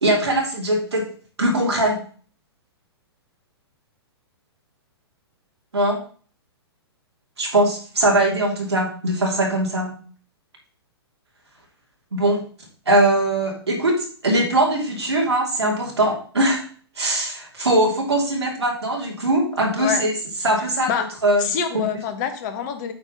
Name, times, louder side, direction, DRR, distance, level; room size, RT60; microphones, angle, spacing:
voice 1, 0.0-1.0 1.4-2.0 5.7-6.0 7.4-10.0 12.1-12.4 12.9-16.6 17.0-20.1 20.4-21.9, right 1 dB, 85° right, -1 dB, 2.8 m, -21 dB
voice 2, 21.4-22.9, left 7 dB, 45° left, 9 dB, 1.5 m, -25 dB
8.8 x 3.7 x 6.6 m, 0.44 s
hypercardioid pair, 120°, 14 cm